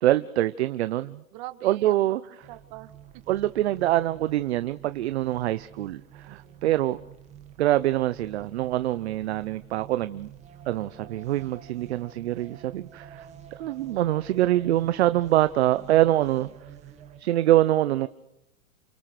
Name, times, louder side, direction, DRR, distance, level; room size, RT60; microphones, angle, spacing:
voice 1, 0.0-1.2 1.6-2.2 3.3-7.0 7.6-10.3 10.7-13.3 13.6-16.5 17.2-18.1, right 14 dB, 50° right, 13 dB, 0.9 m, -24 dB
voice 2, 1.3-3.2 6.3-6.6 15.7-16.5 17.2-17.3, right 16 dB, 35° right, 9 dB, 2.2 m, -45 dB
sound 1, 2.4-17.2, right 9 dB, 15° right, 2.0 m, -48 dB
29.5 x 25.0 x 6.8 m, 0.84 s
hypercardioid pair, 160°, 40 cm